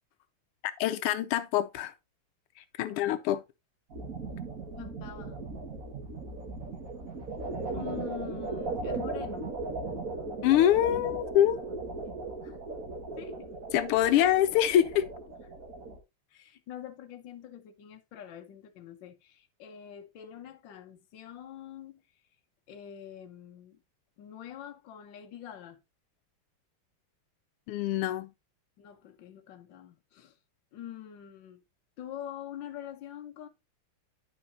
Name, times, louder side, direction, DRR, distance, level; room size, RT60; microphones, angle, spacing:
voice 1, 0.8-1.9 2.8-3.4 10.4-11.6 13.7-15.1 27.7-28.3, left 11 dB, 90° left, 1.5 m, -25 dB
sound 1, 3.9-16.0, right 3 dB, 40° right, 1.9 m, -37 dB
voice 2, 4.8-5.4 7.7-9.5 12.4-12.6 13.2-13.5 16.3-22.0 22.7-23.8 24.2-25.8 28.8-30.4 30.7-31.6 32.0-33.5, left 10 dB, 65° left, 1.5 m, -45 dB
9.7 x 6.2 x 2.7 m
omnidirectional pair, 2.4 m